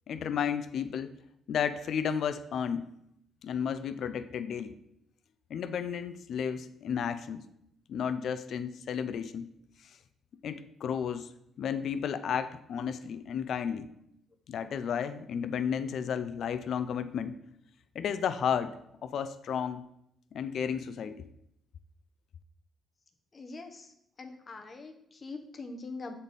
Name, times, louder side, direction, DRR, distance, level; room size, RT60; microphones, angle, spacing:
voice 1, 0.1-1.1 1.5-2.9 3.4-4.7 5.5-7.4 7.9-9.5 10.4-11.3 11.6-13.9 14.5-17.3 17.9-18.8 19.0-19.8 20.3-21.2, left 7 dB, 65° left, 12 dB, 0.4 m, -32 dB
voice 2, 23.3-23.9 24.2-26.1, left 3 dB, 35° left, 4 dB, 0.8 m, -43 dB
7.2 x 4.0 x 3.4 m, 0.77 s
cardioid pair, 90°, 0 cm